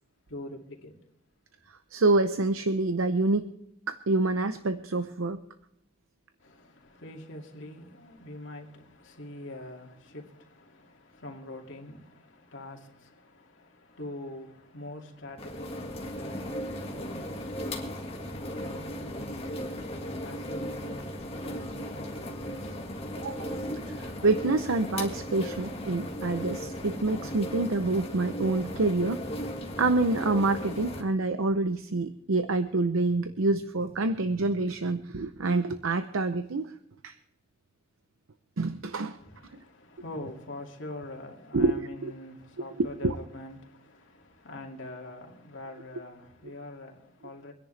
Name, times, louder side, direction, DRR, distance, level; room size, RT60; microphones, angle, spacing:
voice 1, 0.3-0.9 6.4-22.9 39.1-47.5, left 1 dB, 65° left, 2.4 m, -44 dB
voice 2, 1.7-3.5 3.9-5.4 23.2-29.2 29.8-36.7 37.0-37.2 38.6-39.2 39.5-39.6 41.5-42.1 42.8-43.2, right 3 dB, 80° right, 0.7 m, -27 dB
sound 1, 15.4-31.0, equal, 30° left, 1.8 m, -36 dB
25.5 x 10.5 x 3.3 m
head